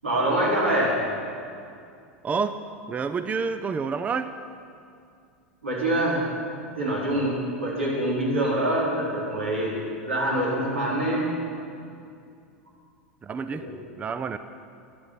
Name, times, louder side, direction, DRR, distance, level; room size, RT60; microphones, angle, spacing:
voice 1, 0.0-1.0 5.6-6.2 6.7-11.4 13.5-13.7, right 1 dB, 85° right, -5 dB, 4.0 m, -25 dB
voice 2, 2.2-2.6 2.9-4.3 13.2-13.6 14.0-14.4, right 5 dB, 20° right, 11 dB, 0.5 m, -28 dB
13.5 x 10.5 x 5.9 m, 2.4 s
hypercardioid pair, 85°, 7 cm